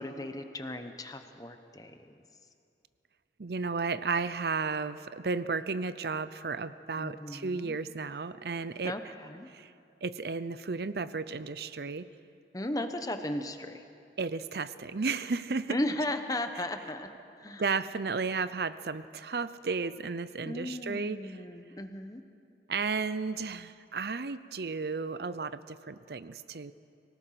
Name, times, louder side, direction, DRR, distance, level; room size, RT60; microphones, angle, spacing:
voice 1, 0.0-2.2 6.9-7.8 8.8-9.5 12.5-13.8 15.7-17.1 17.4-17.6 20.4-22.2, left 1 dB, 20° left, 7 dB, 1.1 m, -36 dB
voice 2, 3.4-8.9 9.5-9.7 10.0-12.1 14.2-15.8 17.6-21.2 22.7-26.7, right 4 dB, 60° right, 14 dB, 0.6 m, -33 dB
24.5 x 18.0 x 5.9 m, 2.5 s
head